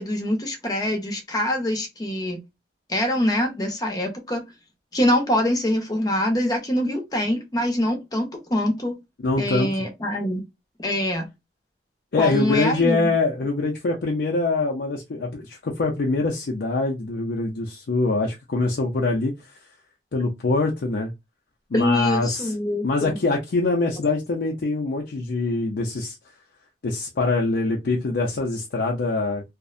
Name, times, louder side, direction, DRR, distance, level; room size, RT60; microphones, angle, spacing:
voice 1, 0.0-2.4 2.9-4.4 4.9-9.0 9.4-10.4 10.8-11.3 12.2-13.1 21.7-23.2, left 1 dB, 20° left, 0.7 m, -24 dB
voice 2, 9.2-9.7 12.1-19.3 20.1-21.1 21.7-22.5 22.8-26.2 26.8-29.4, left 3 dB, 70° left, 0.5 m, -24 dB
2.5 x 2.0 x 2.4 m
head